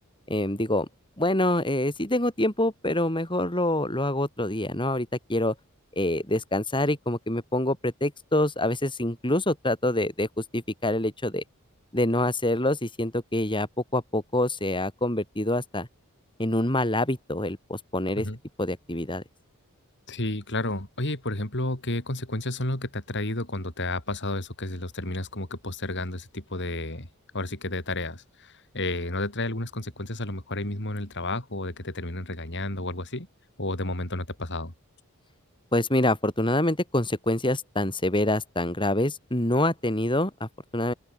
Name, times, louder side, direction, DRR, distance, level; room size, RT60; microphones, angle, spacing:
voice 1, 0.3-0.9 1.2-5.5 5.9-11.4 11.9-15.9 16.4-18.3 18.6-19.2 35.7-40.9, left 1 dB, 20° left, 7.2 m, -26 dB
voice 2, 20.1-27.1 27.3-33.3 33.6-34.7, left 2 dB, 55° left, 5.3 m, -31 dB
open air
head